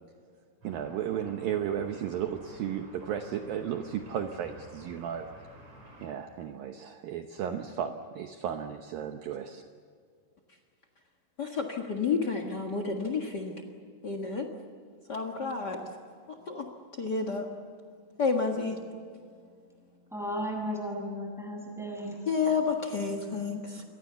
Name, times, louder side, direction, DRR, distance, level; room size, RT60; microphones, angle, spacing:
sound 1, 0.6-6.1, right 1 dB, 35° right, 7.3 m, -51 dB
voice 1, 0.6-5.3 6.0-9.6, right 9 dB, 70° right, 5 dB, 2.4 m, -34 dB
voice 2, 11.4-13.5 14.0-14.5 15.1-15.8 16.5-16.7 17.0-17.5 18.2-18.8 22.3-23.8, left 5 dB, 75° left, 5 dB, 0.9 m, -30 dB
voice 3, 20.1-22.2, equal, ahead, 0 dB, 7.5 m, -35 dB
29.0 x 23.5 x 6.9 m, 2.2 s
omnidirectional pair, 4.9 m